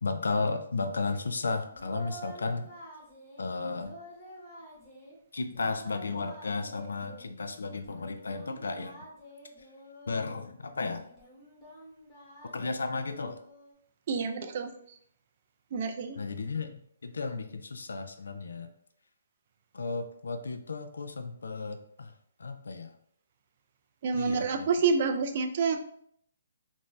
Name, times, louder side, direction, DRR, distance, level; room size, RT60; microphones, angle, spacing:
voice 1, 0.0-2.7 3.4-4.0 5.3-9.0 10.1-11.1 12.5-13.4 16.2-18.7 19.7-22.1 22.4-22.9 24.1-24.7, left 3 dB, 85° left, 8 dB, 0.3 m, -34 dB
Singing, 1.7-3.5 3.8-5.2 5.5-7.2 7.7-10.5 11.0-13.7, right 1 dB, 10° left, 0.9 m, -49 dB
voice 2, 14.1-15.0 15.7-16.2 24.0-25.8, right 5 dB, 45° right, 7 dB, 0.3 m, -28 dB
2.6 x 2.1 x 3.1 m, 0.67 s
hypercardioid pair, 150°, 0 cm